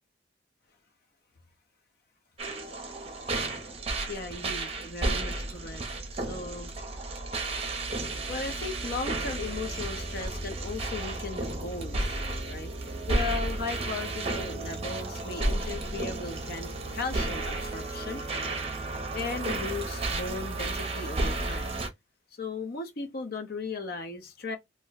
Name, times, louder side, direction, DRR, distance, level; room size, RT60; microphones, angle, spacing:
sound 1, 2.4-21.9, right 2 dB, 35° right, 0.7 m, -32 dB
voice 1, 4.1-5.8 6.1-6.7 8.3-12.7 13.1-18.2 19.1-21.8 22.4-24.6, left 4 dB, 55° left, 0.6 m, -37 dB
2.5 x 2.1 x 3.9 m
head